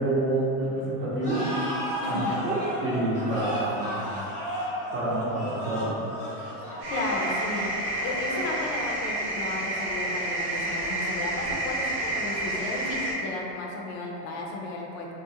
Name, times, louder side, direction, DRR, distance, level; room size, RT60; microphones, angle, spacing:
voice 1, 0.0-1.5 2.1-4.1 4.9-5.9, right 2 dB, 30° right, -8 dB, 0.6 m, -28 dB
sound 1, 1.2-9.1, equal, 20° left, 0.4 m, -34 dB
voice 2, 2.0-2.4 3.6-4.1 6.7-7.7 8.0-15.1, left 2 dB, 65° left, -1 dB, 0.6 m, -34 dB
sound 2, 6.8-13.1, right 1 dB, 65° right, 0.7 m, -30 dB
2.4 x 2.1 x 2.7 m, 2.7 s
supercardioid pair, 145°, 42 cm